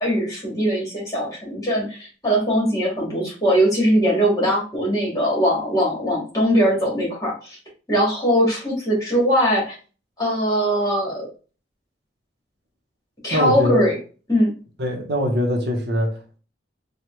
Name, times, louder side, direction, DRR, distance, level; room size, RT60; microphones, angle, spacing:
voice 1, 0.0-7.6 7.9-9.8 10.2-11.3 13.2-14.0 14.3-14.5, equal, 20° left, 1.7 m, -21 dB
voice 2, 13.3-13.8 14.8-16.4, left 1 dB, 60° right, 0.8 m, -23 dB
4.5 x 2.3 x 3.1 m
head